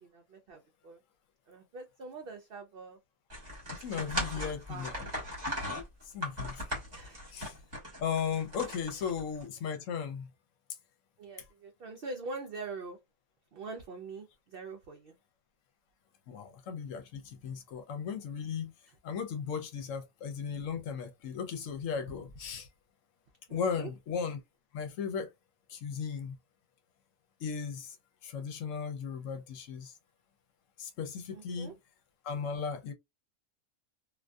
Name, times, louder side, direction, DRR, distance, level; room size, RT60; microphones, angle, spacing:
voice 1, 0.0-1.0 1.5-3.0 4.0-4.9 6.9-7.2 8.9-9.0 11.2-13.0 13.5-15.2 23.5-23.9 31.3-31.7, right 3 dB, 60° right, 0.6 m, -44 dB
sound 1, 3.3-9.4, equal, 30° right, 1.3 m, -38 dB
voice 2, 3.8-4.9 6.0-6.7 7.3-7.6 8.0-10.3 16.3-18.7 19.0-22.7 23.5-24.4 24.7-25.3 25.7-26.4 27.4-28.0 28.2-29.9 30.8-31.7 32.2-32.9, left 6 dB, 75° left, 1.0 m, -36 dB
2.5 x 2.4 x 2.2 m
omnidirectional pair, 1.4 m